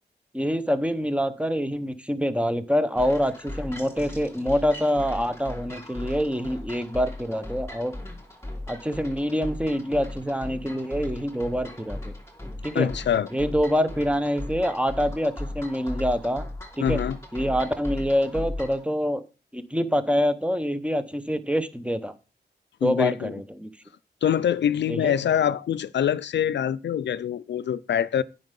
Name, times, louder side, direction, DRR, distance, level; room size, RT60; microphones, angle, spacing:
voice 1, 0.3-7.9 8.7-12.1 12.4-12.9 13.3-16.4 16.8-17.0 17.3-19.2 19.5-22.1 22.8-23.7 24.9-25.1, equal, 5° right, 0.9 m, -26 dB
sound 1, 3.0-18.8, left 1 dB, 15° left, 2.9 m, -37 dB
voice 2, 12.7-13.3 16.8-17.2 22.8-23.3 24.2-28.2, left 9 dB, 85° left, 0.4 m, -24 dB
9.2 x 5.5 x 5.3 m
wide cardioid pair, 75°, 18 cm